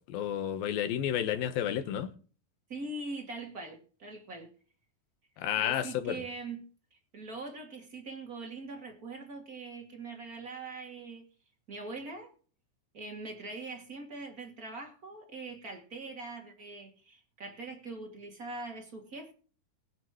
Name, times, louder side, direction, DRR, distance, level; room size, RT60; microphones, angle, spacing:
voice 1, 0.1-2.1 5.4-6.2, left 10 dB, 85° left, 2.9 m, -31 dB
voice 2, 2.7-4.5 5.6-11.2 11.7-12.3 12.9-19.3, right 3 dB, 30° right, 2.1 m, -42 dB
22.5 x 8.0 x 3.0 m
omnidirectional pair, 4.1 m